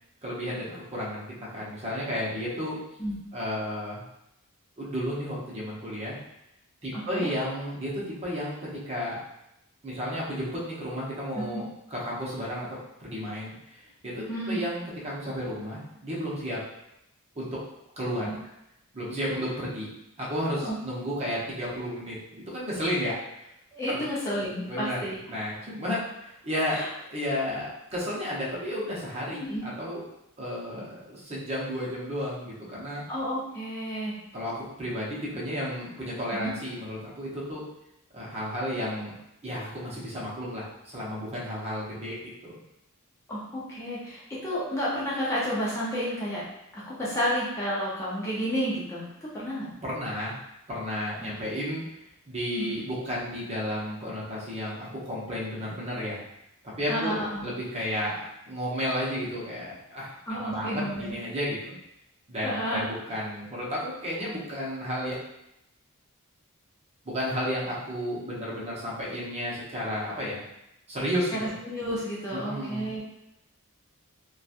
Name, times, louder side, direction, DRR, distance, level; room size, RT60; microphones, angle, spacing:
voice 1, 0.2-2.8 3.3-4.0 4.8-6.2 6.8-9.2 9.8-12.7 13.0-16.6 17.3-17.6 18.0-18.3 18.9-19.9 20.2-23.2 23.9-24.0 24.7-25.0 25.3-30.0 30.4-33.0 34.3-37.6 38.1-39.1 39.4-42.2 42.4-42.5 49.8-50.4 50.7-51.8 52.3-56.2 56.8-61.8 62.3-65.1 67.0-70.4 70.9-71.5 72.3-73.0, equal, 30° right, -6 dB, 0.8 m, -32 dB
voice 2, 6.9-7.3 11.3-11.6 14.3-14.6 18.2-18.3 20.6-20.8 23.7-25.2 26.7-26.9 29.4-29.6 33.1-34.2 36.3-36.5 43.3-46.4 46.7-49.7 51.2-51.3 52.6-52.8 56.9-57.4 60.3-61.2 62.4-62.8 71.3-73.0, equal, 15° left, -8 dB, 0.6 m, -31 dB
2.9 x 2.3 x 2.5 m, 0.86 s
head